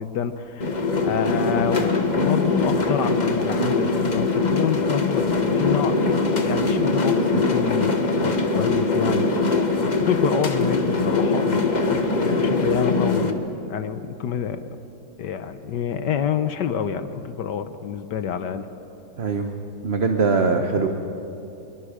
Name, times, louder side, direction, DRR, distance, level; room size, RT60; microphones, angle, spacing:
voice 1, 0.0-9.2 10.0-14.6 15.2-18.7 20.7-20.8, left 8 dB, 65° left, 11 dB, 1.3 m, -27 dB
sound 1, 0.6-13.3, left 3 dB, 30° left, 1.0 m, -22 dB
voice 2, 19.2-20.9, right 4 dB, 40° right, 5 dB, 1.0 m, -22 dB
26.5 x 22.5 x 5.0 m, 2.9 s
omnidirectional pair, 2.2 m